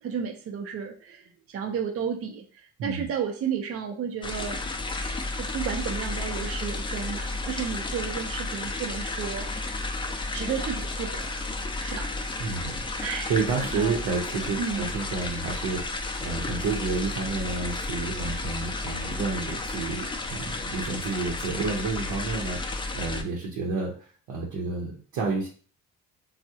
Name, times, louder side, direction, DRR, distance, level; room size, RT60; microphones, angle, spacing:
voice 1, 0.0-4.6 5.4-9.8 10.3-13.3 13.6-14.0 14.6-14.9, right 7 dB, 50° right, 3 dB, 0.5 m, -33 dB
sound 1, 4.2-23.2, left 2 dB, 15° left, 0.4 m, -32 dB
voice 2, 12.4-12.8 13.3-25.5, right 4 dB, 90° right, -1 dB, 0.7 m, -30 dB
3.5 x 2.0 x 2.7 m, 0.42 s
cardioid pair, 90°, 30 cm